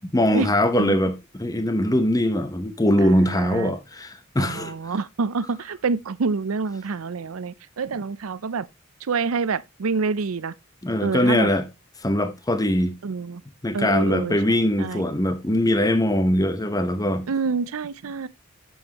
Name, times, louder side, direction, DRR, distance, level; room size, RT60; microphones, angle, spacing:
voice 1, 0.1-4.7 10.8-11.7 12.0-12.9 13.6-17.2, left 1 dB, 15° left, 0.9 m, -22 dB
voice 2, 3.0-3.8 4.4-8.7 9.1-10.5 11.0-11.5 13.0-13.4 13.7-15.0 17.3-18.3, right 4 dB, 75° right, 0.5 m, -27 dB
9.1 x 7.1 x 2.9 m
head